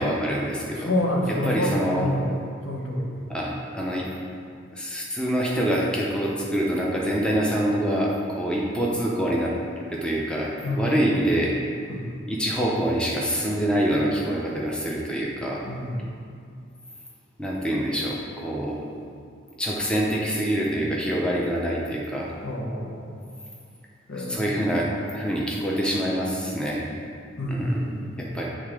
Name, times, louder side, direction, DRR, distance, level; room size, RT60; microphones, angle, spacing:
voice 1, 0.0-0.9 1.4-2.1 3.3-4.1 4.8-9.5 9.9-11.5 12.3-15.6 17.4-18.8 19.6-22.3 24.2-26.9 27.5-27.8 28.2-28.5, equal, 5° left, -4 dB, 0.7 m, -25 dB
voice 2, 0.7-2.4 2.7-3.3 10.6-10.9 11.9-12.2 15.6-16.1 22.4-23.2 24.1-24.6 27.4-28.3, left 1 dB, 80° left, -2 dB, 1.1 m, -28 dB
7.9 x 3.6 x 4.9 m, 2.3 s
head